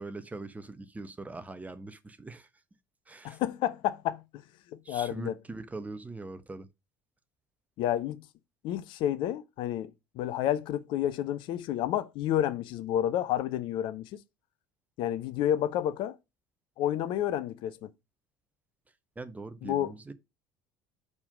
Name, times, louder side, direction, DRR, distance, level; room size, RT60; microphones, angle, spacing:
voice 1, 0.0-2.5 3.1-3.4 4.8-6.7 19.2-20.1, right 3 dB, 15° right, 0.9 m, -42 dB
voice 2, 3.2-4.2 4.7-5.3 7.8-8.2 8.6-14.2 15.0-16.2 16.8-17.9 19.6-19.9, left 11 dB, 50° left, 0.6 m, -30 dB
5.3 x 4.8 x 5.1 m
figure-of-eight pair, 65°, 10 cm